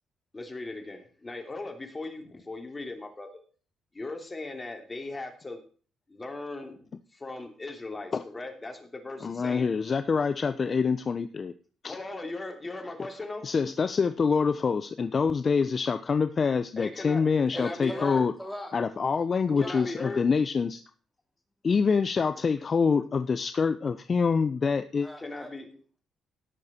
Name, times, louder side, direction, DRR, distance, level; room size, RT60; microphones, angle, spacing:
voice 1, 0.3-3.4 3.9-5.6 6.1-6.8 7.1-9.7 11.9-13.4 16.8-17.2 17.5-18.3 19.6-20.2 25.2-25.7, left 2 dB, 20° left, 4 dB, 2.9 m, -38 dB
voice 2, 9.2-11.5 11.8-12.0 13.4-18.3 18.7-20.8 21.6-25.1, left 5 dB, 40° left, 11 dB, 0.6 m, -26 dB
voice 3, 17.5-18.7 19.5-19.9 25.0-26.0, left 1 dB, ahead, 2 dB, 3.3 m, -40 dB
17.5 x 6.7 x 4.3 m, 0.41 s
cardioid pair, 90°, 0 cm